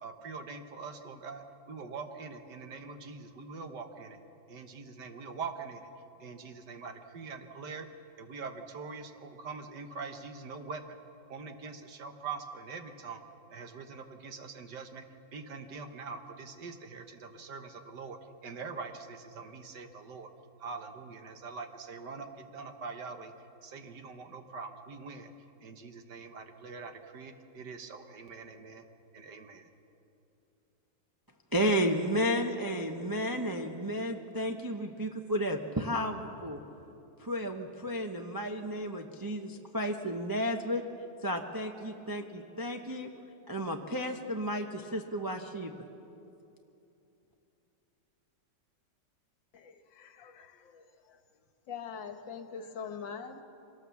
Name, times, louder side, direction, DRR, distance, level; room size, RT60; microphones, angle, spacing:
voice 1, 0.0-4.2 4.5-5.9 6.2-7.9 8.2-10.8 11.3-13.2 13.5-15.1 15.3-20.3 20.6-23.3 23.6-25.3 25.6-28.9 29.1-29.7, right 4 dB, 65° right, 7 dB, 1.7 m, -43 dB
voice 2, 31.5-36.6 37.2-40.8 41.2-43.1 43.5-45.7, equal, 20° right, 3 dB, 0.5 m, -32 dB
voice 3, 49.5-50.8 51.7-53.4, left 6 dB, 75° left, 8 dB, 1.9 m, -43 dB
24.0 x 18.5 x 7.1 m, 2.8 s
omnidirectional pair, 2.1 m